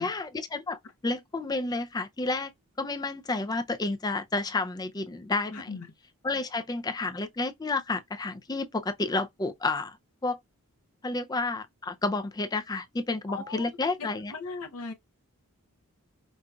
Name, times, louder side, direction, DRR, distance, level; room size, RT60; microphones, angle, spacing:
voice 1, 0.0-2.5 2.8-5.8 6.2-10.0 10.2-10.4 11.0-14.3, left 3 dB, 15° left, 0.3 m, -30 dB
voice 2, 5.5-5.9 13.3-13.7 14.3-14.9, left 4 dB, 75° left, 0.6 m, -38 dB
5.2 x 2.3 x 2.2 m
head